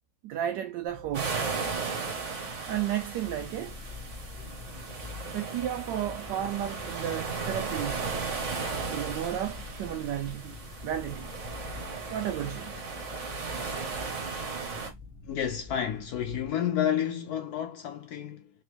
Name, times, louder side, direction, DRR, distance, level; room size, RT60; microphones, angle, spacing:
voice 1, 0.2-1.4 2.7-3.8 5.3-8.1 8.9-11.3 12.1-12.7, right 11 dB, 80° right, 1.2 m, -33 dB
sound 1, 0.9-16.5, left 4 dB, 15° left, 1.1 m, -49 dB
sound 2, 1.1-14.9, right 5 dB, 45° right, 1.4 m, -36 dB
sound 3, 3.3-15.3, left 5 dB, 35° left, 0.8 m, -46 dB
voice 2, 15.3-18.5, left 9 dB, 70° left, 1.1 m, -30 dB
3.7 x 3.5 x 3.2 m
omnidirectional pair, 1.9 m